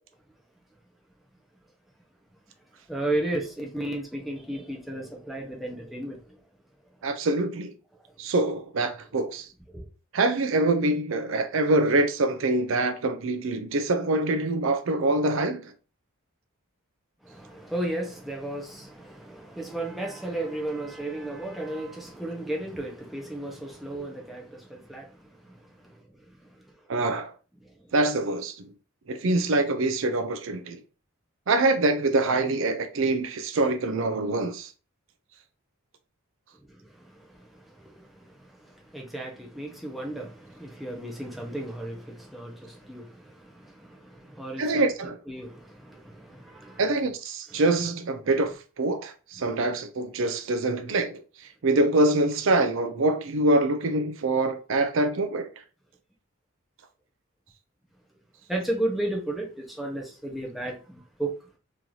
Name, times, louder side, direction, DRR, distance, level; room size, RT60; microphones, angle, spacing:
voice 1, 2.9-6.4 9.7-9.9 17.2-26.7 27.6-27.9 36.6-44.9 45.3-46.8 47.5-47.6 49.4-49.7 58.5-61.3, right 1 dB, ahead, 0.8 m, -34 dB
voice 2, 7.0-7.7 8.2-9.5 10.1-15.7 26.9-27.3 27.9-28.7 29.1-30.8 31.5-34.7 44.6-45.2 46.8-51.2 51.6-55.5, right 2 dB, 60° right, 0.5 m, -25 dB
3.1 x 2.7 x 3.8 m
head